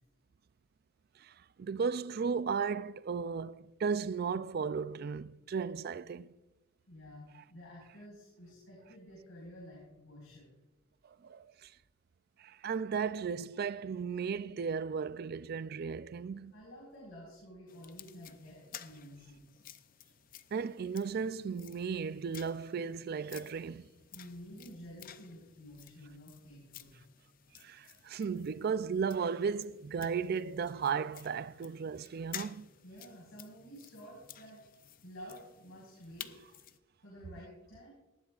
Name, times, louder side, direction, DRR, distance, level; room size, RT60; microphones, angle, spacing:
voice 1, 1.2-6.4 11.1-11.7 12.4-16.5 20.5-23.9 27.6-32.7, right 6 dB, 50° right, 0.3 m, -35 dB
voice 2, 6.9-10.5 16.5-19.6 24.1-26.9 32.8-34.6 35.0-36.4 37.0-37.9, equal, 75° left, 4.8 m, -51 dB
sound 1, 17.7-36.8, left 10 dB, 40° left, 0.5 m, -53 dB
19.0 x 13.5 x 2.4 m
head